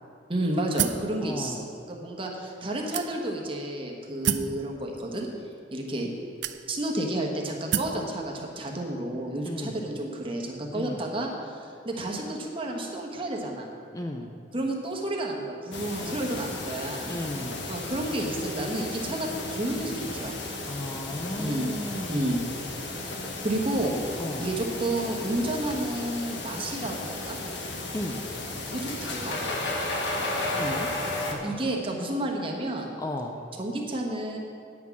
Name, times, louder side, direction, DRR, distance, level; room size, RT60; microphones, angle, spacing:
voice 1, 0.3-5.3 5.7-6.1 6.7-13.7 14.5-17.1 17.7-20.4 21.4-21.7 22.1-22.4 23.4-24.0 24.4-27.4 28.7-29.5 31.4-32.9 33.6-34.4, right 1 dB, 30° right, 0 dB, 1.2 m, -31 dB
sound 1, 0.8-1.1 1.9-2.0 2.9-3.5 4.2-4.6 5.5-5.6 6.4-7.0 7.7-8.0, right 9 dB, 70° right, 0.4 m, -28 dB
voice 2, 1.2-1.6 9.4-9.8 10.7-11.0 13.9-14.3 17.1-17.7 20.6-22.6 24.2-24.5 27.9-28.2 30.6-31.5 33.0-33.4, left 1 dB, 20° left, 3 dB, 0.5 m, -35 dB
sound 2, 15.7-31.3, left 2 dB, 75° left, 1.3 m, -34 dB
9.3 x 6.0 x 7.2 m, 2.4 s
head